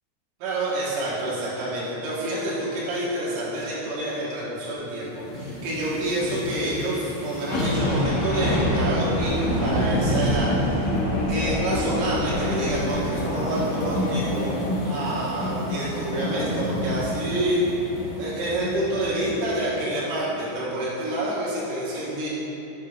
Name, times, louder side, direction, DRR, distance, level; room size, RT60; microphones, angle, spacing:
voice 1, 0.4-10.9 11.3-14.6 14.9-17.7 18.2-22.3, right 1 dB, 85° right, -8 dB, 3.8 m, -28 dB
sound 1, 5.2-19.6 20.1-20.2, left 1 dB, 80° left, 1.8 m, -27 dB
Car passing by / Idling / Accelerating revving vroom, 7.8-12.9, right 2 dB, 70° right, 3.3 m, -31 dB
8.1 x 8.1 x 2.3 m, 2.9 s
omnidirectional pair, 5.5 m